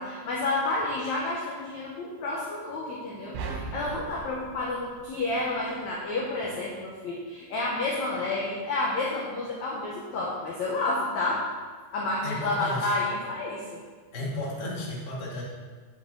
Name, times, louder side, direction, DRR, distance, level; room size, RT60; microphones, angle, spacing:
voice 1, 0.0-11.4 11.9-13.8, left 2 dB, 70° left, -4 dB, 1.8 m, -30 dB
sound 1, 3.3-5.8, right 4 dB, 90° right, 3.2 m, -38 dB
voice 2, 12.2-13.0 14.1-15.4, left 1 dB, 35° left, -4 dB, 1.7 m, -33 dB
9.0 x 8.0 x 3.9 m, 1.5 s
omnidirectional pair, 4.7 m